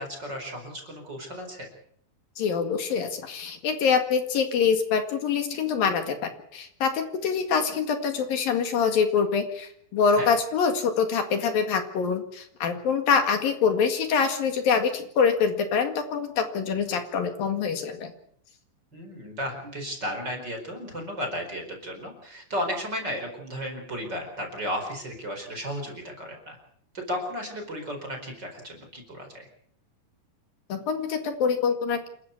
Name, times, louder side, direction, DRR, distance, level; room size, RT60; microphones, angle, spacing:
voice 1, 0.0-1.7 10.1-10.4 18.9-26.6 26.9-29.5, equal, 25° right, 3 dB, 4.6 m, -34 dB
voice 2, 2.4-18.1 30.7-32.1, left 6 dB, 55° left, 7 dB, 3.3 m, -25 dB
28.5 x 13.5 x 8.4 m, 0.66 s
omnidirectional pair, 5.4 m